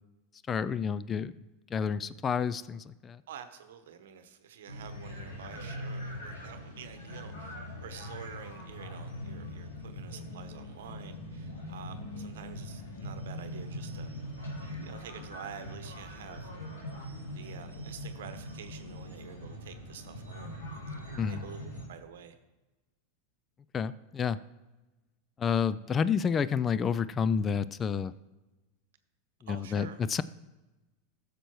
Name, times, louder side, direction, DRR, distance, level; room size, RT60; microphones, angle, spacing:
voice 1, 0.5-1.3 1.7-3.2 21.1-21.4 23.7-24.4 25.4-28.1 29.4-30.2, left 6 dB, 30° left, 16 dB, 0.4 m, -29 dB
voice 2, 3.3-14.1 14.8-16.5 17.3-20.6 20.9-22.3 29.5-30.0, right 8 dB, 75° right, 9 dB, 0.9 m, -48 dB
sound 1, 4.7-21.9, left 1 dB, 85° left, 3.4 m, -42 dB
15.0 x 6.7 x 3.1 m, 1.1 s
hypercardioid pair, 95°, 0 cm